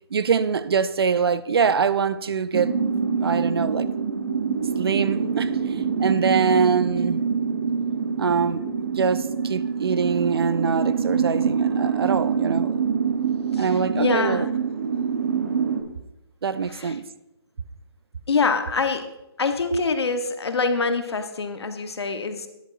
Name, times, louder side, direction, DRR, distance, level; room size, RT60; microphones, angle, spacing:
voice 1, 0.1-2.7 3.2-3.9 4.8-7.2 8.2-12.8 13.6-14.5 16.4-17.0, right 6 dB, 65° right, 0.5 m, -24 dB
sound 1, 2.5-15.8, right 6 dB, 35° right, 0.8 m, -25 dB
voice 2, 13.5-14.6 16.7-17.0 18.3-19.1 19.4-22.5, left 4 dB, 75° left, 1.0 m, -25 dB
10.5 x 8.5 x 2.5 m
hypercardioid pair, 165°, 14 cm